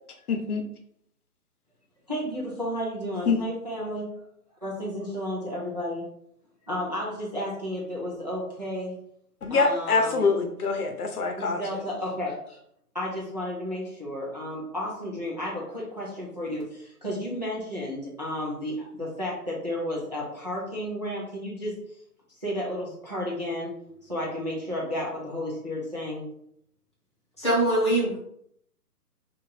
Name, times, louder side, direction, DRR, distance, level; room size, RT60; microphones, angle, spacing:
voice 1, 0.3-0.6 3.3-3.4 9.4-11.6, left 4 dB, 70° left, 4 dB, 0.8 m, -24 dB
voice 2, 2.1-4.2 4.6-6.0 6.7-8.9 9.5-10.2 11.4-12.6 12.9-21.8 22.4-23.7 24.0-26.3, left 1 dB, 30° right, -6 dB, 0.5 m, -32 dB
voice 3, 27.4-28.2, right 1 dB, 20° left, -9 dB, 0.8 m, -23 dB
2.8 x 2.5 x 4.1 m, 0.71 s
hypercardioid pair, 175°, 47 cm